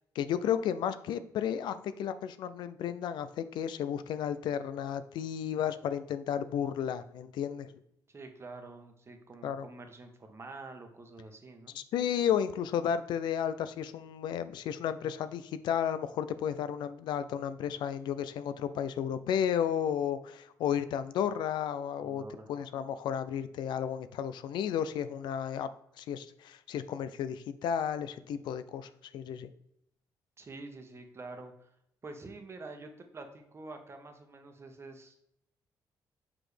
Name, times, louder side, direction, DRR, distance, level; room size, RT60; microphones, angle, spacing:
voice 1, 0.2-7.7 9.4-9.7 11.7-22.2 22.5-25.7 26.0-29.5, left 9 dB, 85° left, 13 dB, 0.4 m, -33 dB
voice 2, 8.1-11.8 22.0-22.5 30.4-31.7 32.0-35.2, right 3 dB, 35° right, 5 dB, 1.1 m, -47 dB
5.9 x 4.9 x 3.3 m, 0.76 s
cardioid pair, 85°, 8 cm